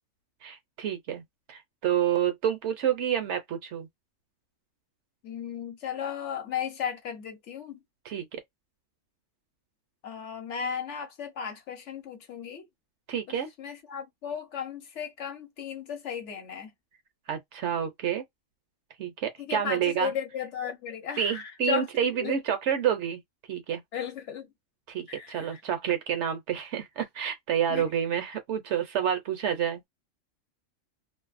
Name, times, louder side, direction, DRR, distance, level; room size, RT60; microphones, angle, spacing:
voice 1, 0.4-3.9 8.1-8.4 13.1-13.5 17.3-18.2 19.0-20.1 21.2-23.2 23.5-23.8 24.9-29.8, right 9 dB, 65° right, 0.8 m, -29 dB
voice 2, 5.2-7.8 10.0-12.7 13.6-16.7 19.4-21.9 22.2-22.3 23.9-24.5 25.1-25.6 27.7-27.9, left 8 dB, 65° left, 1.0 m, -35 dB
2.6 x 2.0 x 2.4 m
omnidirectional pair, 1.4 m